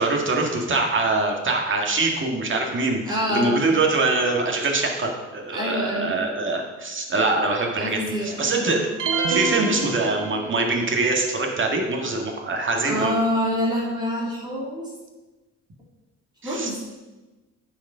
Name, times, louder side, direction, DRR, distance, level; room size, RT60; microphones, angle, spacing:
voice 1, 0.0-13.1 16.4-16.7, right 3 dB, 40° right, 1 dB, 1.9 m, -24 dB
voice 2, 3.0-3.6 5.5-6.1 7.8-8.8 12.9-14.9 16.4-16.8, equal, 15° right, -4 dB, 2.5 m, -26 dB
sound 1, 9.0-10.8, right 4 dB, 85° right, 0.9 m, -27 dB
8.9 x 5.1 x 5.6 m, 1.2 s
cardioid pair, 90°, 30 cm